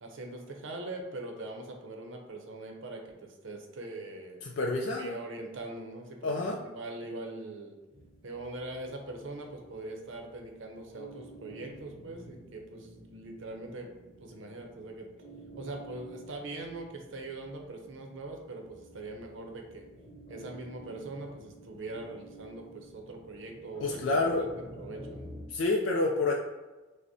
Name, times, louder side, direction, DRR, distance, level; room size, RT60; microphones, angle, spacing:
voice 1, 0.0-4.4 5.0-7.8 8.2-15.1 15.6-19.9 20.3-24.5 24.7-25.4, right 2 dB, 70° right, 2 dB, 0.6 m, -42 dB
voice 2, 4.4-5.1 6.2-6.6 23.8-24.5 25.5-26.3, left 2 dB, 65° left, 0 dB, 0.3 m, -28 dB
sound 1, 7.9-25.4, right 1 dB, 45° left, 0.8 m, -51 dB
6.1 x 2.1 x 2.6 m, 1.2 s
head